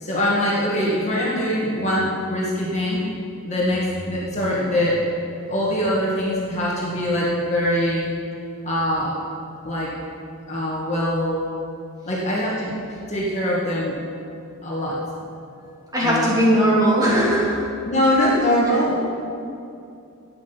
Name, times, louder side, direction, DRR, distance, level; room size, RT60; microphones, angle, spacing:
voice 1, 0.0-3.1 3.4-5.1 5.5-8.1 8.6-9.2 9.6-9.9 10.5-11.5 12.1-12.8 13.1-14.0 14.6-15.0 16.0-16.4 17.9-19.0, left 1 dB, 30° left, -6 dB, 2.0 m, -22 dB
voice 2, 15.9-17.6, equal, 15° right, -7 dB, 2.8 m, -18 dB
12.0 x 9.1 x 5.8 m, 2.6 s
head